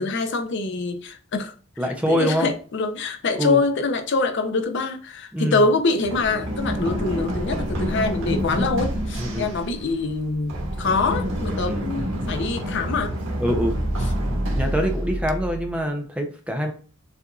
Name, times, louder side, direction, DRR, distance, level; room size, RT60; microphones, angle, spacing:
voice 1, 0.0-1.5 2.1-13.1, left 3 dB, 60° left, 0.6 m, -24 dB
voice 2, 1.8-2.5 3.4-3.6 5.3-5.7 6.8-7.1 9.2-9.5 11.7-11.9 13.4-13.8 14.5-16.7, equal, 5° right, 0.5 m, -25 dB
Run, 6.0-15.8, equal, 80° right, 1.3 m, -27 dB
6.6 x 2.5 x 2.4 m
head